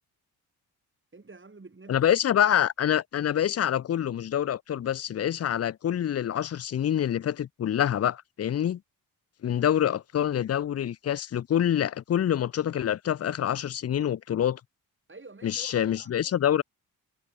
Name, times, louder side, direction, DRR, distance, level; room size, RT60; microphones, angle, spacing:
voice 1, 1.1-2.1 15.1-16.3, right 3 dB, 30° right, 7.8 m, -48 dB
voice 2, 1.9-8.8 9.4-14.6 15.4-16.6, left 10 dB, 40° left, 0.5 m, -26 dB
supercardioid pair, 55°, 39 cm